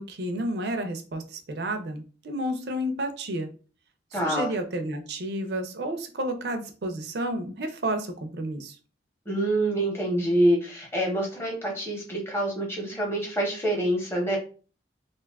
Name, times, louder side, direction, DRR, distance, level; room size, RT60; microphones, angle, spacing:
voice 1, 0.0-3.5 4.1-8.8, right 1 dB, 65° right, 7 dB, 0.5 m, -31 dB
voice 2, 4.1-4.5 9.3-14.4, right 1 dB, 15° left, -1 dB, 0.8 m, -26 dB
2.5 x 2.3 x 3.4 m, 0.37 s
head